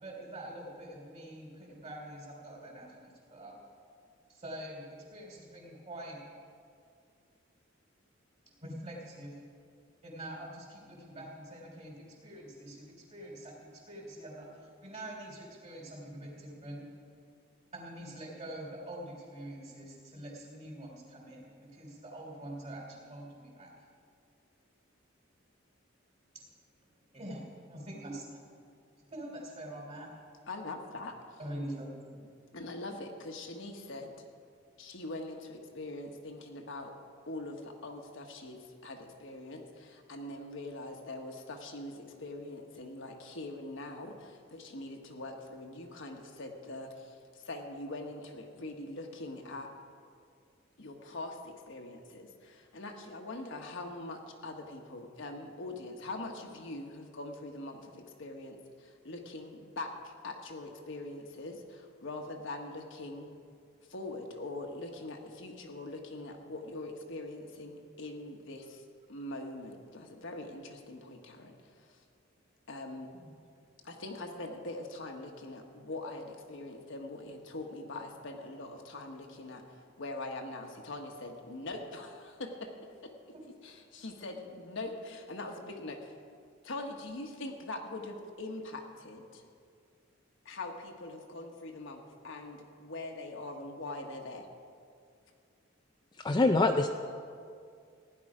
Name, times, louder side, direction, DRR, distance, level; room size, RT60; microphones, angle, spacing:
voice 1, 0.0-3.5 4.3-6.2 8.6-9.4 10.0-16.9 17.7-23.7 26.3-26.5 27.1-28.4 29.1-30.1 31.4-32.2 73.1-73.4 83.3-83.4, right 1 dB, 35° right, -2 dB, 3.4 m, -45 dB
voice 2, 30.5-31.2 32.5-34.3 34.8-36.9 37.3-49.7 50.8-63.3 63.9-68.8 69.1-72.0 72.7-73.1 73.8-79.6 80.0-83.1 83.6-86.1 86.6-89.4 90.4-94.5, left 2 dB, 65° left, 2 dB, 1.3 m, -43 dB
voice 3, 96.2-96.9, left 2 dB, 20° left, 5 dB, 0.4 m, -25 dB
16.0 x 10.5 x 4.9 m, 2.2 s
head